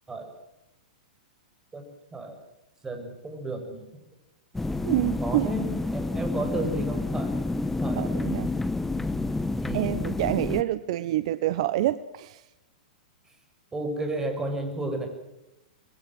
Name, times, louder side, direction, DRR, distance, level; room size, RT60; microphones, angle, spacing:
voice 1, 2.8-3.9 5.2-7.3 7.8-8.0 9.6-10.1 13.7-15.1, right 2 dB, 15° right, 5 dB, 6.7 m, -32 dB
sound 1, 4.5-10.6, left 2 dB, 5° left, 1.2 m, -29 dB
voice 2, 4.8-5.5 7.9-8.5 9.7-12.4, right 14 dB, 55° right, 15 dB, 1.0 m, -27 dB
26.5 x 21.5 x 6.2 m, 0.90 s
hypercardioid pair, 105°, 4 cm